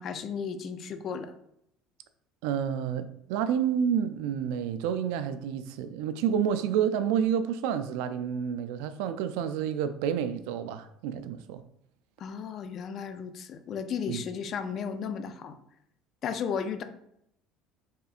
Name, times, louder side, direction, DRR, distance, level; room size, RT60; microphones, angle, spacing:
voice 1, 0.0-1.3 12.2-15.5 16.2-16.8, left 6 dB, 45° left, 0.4 m, -34 dB
voice 2, 2.4-11.6 14.1-14.2, right 8 dB, 85° right, 0.3 m, -29 dB
4.3 x 3.2 x 2.4 m
cardioid pair, 120°, 0 cm